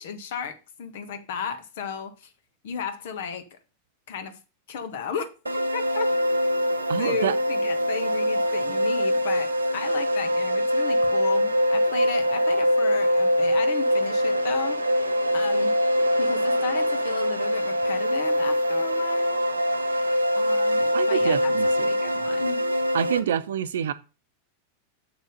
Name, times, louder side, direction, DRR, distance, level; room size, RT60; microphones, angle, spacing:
voice 1, 0.0-2.3 2.6-3.6 4.1-4.4 4.7-5.3 5.7-6.1 7.0-14.8 15.3-15.8 16.2-19.4 20.3-21.5 21.8-22.7, left 6 dB, 55° left, 1.6 m, -34 dB
sound 1, 5.5-23.2, equal, 80° right, 1.1 m, -23 dB
voice 2, 6.9-7.3 20.9-21.7 22.9-23.9, right 9 dB, 60° right, 0.8 m, -26 dB
7.2 x 6.1 x 6.7 m
figure-of-eight pair, 90°, 0 cm